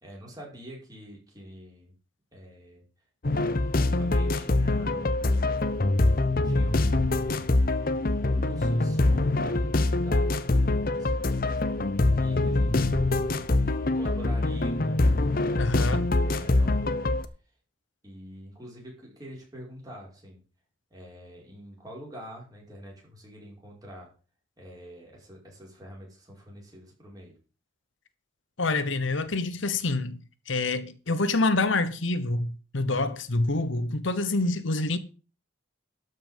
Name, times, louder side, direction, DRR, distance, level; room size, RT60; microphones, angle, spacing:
voice 1, 0.0-1.9 2.3-2.8 3.9-5.3 6.0-6.2 6.4-7.7 8.3-11.6 12.1-12.9 13.6-16.9 18.0-20.4 20.9-24.1 24.6-27.4, equal, 20° right, 5.4 m, -46 dB
sound 1, 3.2-17.3, left 2 dB, 45° left, 0.8 m, -24 dB
voice 2, 15.6-16.1 28.6-35.0, left 2 dB, 75° left, 1.1 m, -27 dB
12.5 x 5.9 x 7.3 m
head